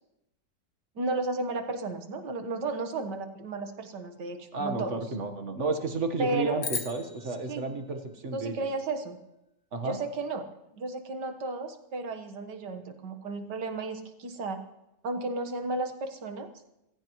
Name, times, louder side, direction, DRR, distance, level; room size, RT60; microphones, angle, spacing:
voice 1, 1.0-5.0 6.2-6.6 7.5-7.7 8.3-9.2 9.8-10.5 10.8-14.6 15.0-16.5, right 3 dB, 70° right, 6 dB, 2.0 m, -33 dB
voice 2, 4.5-8.7 9.7-10.0, right 3 dB, 45° right, 6 dB, 1.7 m, -32 dB
sound 1, 6.6-9.0, left 5 dB, 45° left, 1.5 m, -39 dB
26.0 x 15.5 x 3.1 m, 0.88 s
omnidirectional pair, 1.9 m